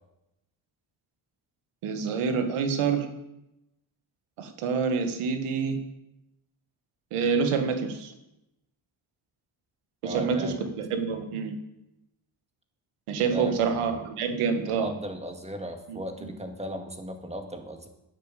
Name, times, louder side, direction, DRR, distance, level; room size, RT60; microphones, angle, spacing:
voice 1, 1.8-3.1 4.4-5.8 7.1-8.1 10.0-11.6 13.1-14.9 15.9-16.3, right 5 dB, 90° right, 7 dB, 1.7 m, -27 dB
voice 2, 10.0-10.6 13.3-14.0 14.6-17.9, equal, 15° right, 5 dB, 2.0 m, -37 dB
9.9 x 7.8 x 7.5 m, 0.90 s
cardioid pair, 80°, 50 cm